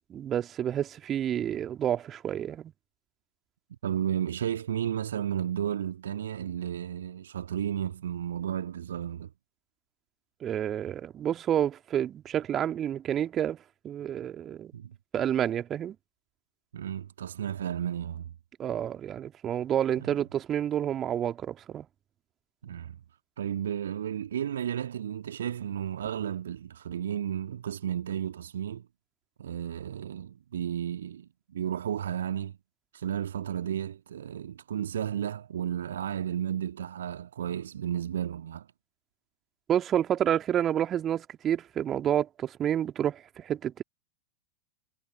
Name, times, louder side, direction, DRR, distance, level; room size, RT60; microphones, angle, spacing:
voice 1, 0.1-2.7 10.4-13.6 13.8-14.7 15.1-16.0 18.6-21.9 39.7-43.8, right 10 dB, 25° right, 2.5 m, -29 dB
voice 2, 3.8-9.3 14.7-15.0 16.7-18.4 20.0-20.2 22.6-23.0 23.4-28.9 29.4-32.6 32.9-38.7, right 9 dB, 65° right, 1.7 m, -33 dB
figure-of-eight pair, 90°, 0 cm